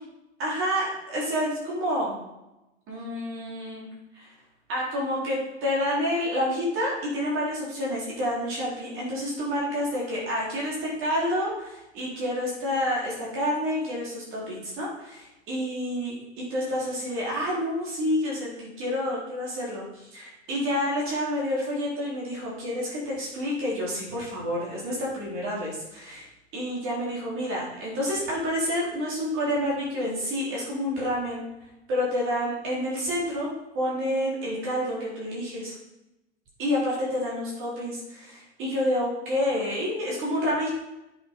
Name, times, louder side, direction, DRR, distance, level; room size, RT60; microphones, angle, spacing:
voice 1, 0.4-2.2 2.9-3.9 4.1-4.3 4.7-26.3 26.5-31.4 31.9-35.7 36.6-40.7, equal, 35° right, -5 dB, 4.2 m, -29 dB
8.3 x 7.8 x 5.5 m, 0.93 s
figure-of-eight pair, 90°, 35 cm